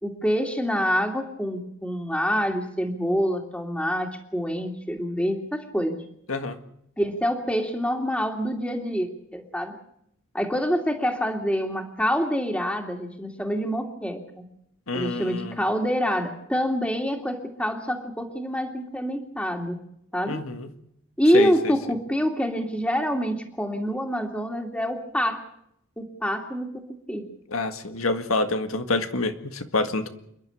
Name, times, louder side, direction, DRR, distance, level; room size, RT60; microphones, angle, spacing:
voice 1, 0.0-6.0 7.0-9.8 10.3-14.4 14.9-19.8 20.1-20.4 21.2-25.4 26.0-27.3, equal, 5° left, 3 dB, 2.6 m, -26 dB
voice 2, 14.9-15.6 20.3-20.7 21.3-21.7 27.5-30.1, left 2 dB, 90° left, 8 dB, 1.9 m, -27 dB
29.0 x 11.0 x 10.0 m, 0.74 s
head